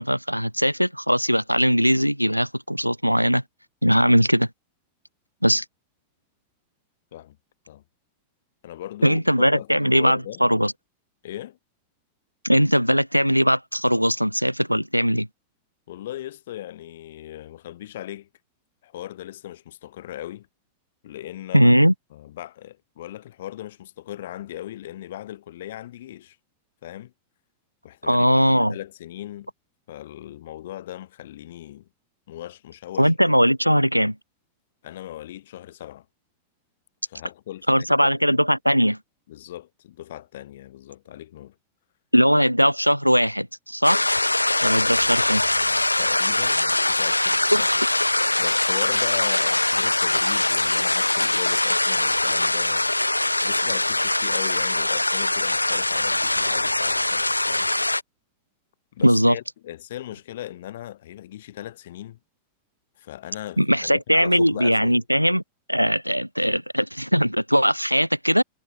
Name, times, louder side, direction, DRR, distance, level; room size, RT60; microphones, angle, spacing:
voice 1, 0.0-3.4 3.8-4.5 5.4-5.6 9.0-10.7 12.4-15.3 21.5-21.9 28.0-28.8 33.0-34.2 37.7-39.0 42.1-44.0 44.6-45.4 47.5-47.6 59.0-59.4 63.6-65.4 65.7-68.4, equal, 90° right, 2.2 m, -20 dB
voice 2, 8.6-10.4 11.2-11.6 15.9-18.3 18.8-20.5 21.0-21.8 22.1-26.4 26.8-27.1 27.8-29.5 29.9-31.9 32.3-33.1 34.8-36.1 37.1-38.1 39.3-41.5 44.6-47.7 48.4-52.9 53.4-57.7 58.9-62.2 63.0-65.0, left 13 dB, 60° left, 7.8 m, -38 dB
sound 1, 43.8-58.0, left 2 dB, 85° left, 1.4 m, -22 dB
figure-of-eight pair, 90°, 0 cm